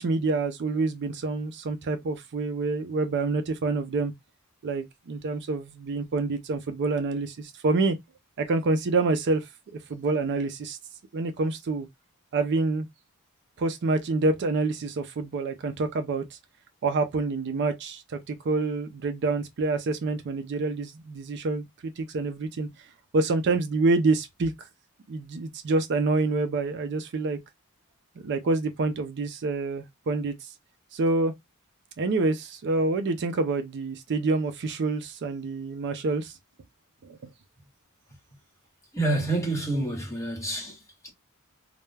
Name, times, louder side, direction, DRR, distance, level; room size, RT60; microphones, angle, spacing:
voice 1, 0.0-4.1 4.6-8.0 8.4-9.5 9.9-10.8 11.1-11.9 12.3-12.9 13.6-16.2 16.8-22.7 23.1-24.5 25.1-27.4 28.2-30.3 30.9-31.3 32.0-36.3 37.0-37.2, right 3 dB, 50° right, 0.4 m, -27 dB
voice 2, 38.9-41.1, right 2 dB, 15° left, 1.0 m, -28 dB
2.2 x 2.1 x 3.2 m
head